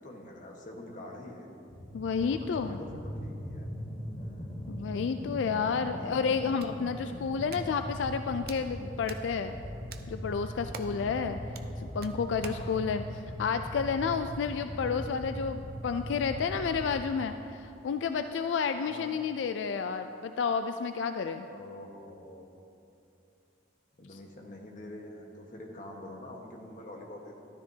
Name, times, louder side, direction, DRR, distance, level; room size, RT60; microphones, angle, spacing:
voice 1, 0.0-1.5 2.2-3.7 4.2-4.7 6.0-6.1 10.7-11.2 12.4-12.8 18.8-19.2 21.5-22.5 24.0-27.5, left 1 dB, 45° left, 0 dB, 1.3 m, -46 dB
sound 1, 1.7-17.1, equal, 25° left, 0.8 m, -40 dB
voice 2, 1.9-2.8 4.7-9.6 10.1-11.4 11.8-13.0 13.4-21.5, left 6 dB, 85° left, 8 dB, 0.3 m, -31 dB
Hands, 6.2-12.7, right 5 dB, 55° right, 0.5 m, -50 dB
13.0 x 12.0 x 2.8 m, 2.7 s
head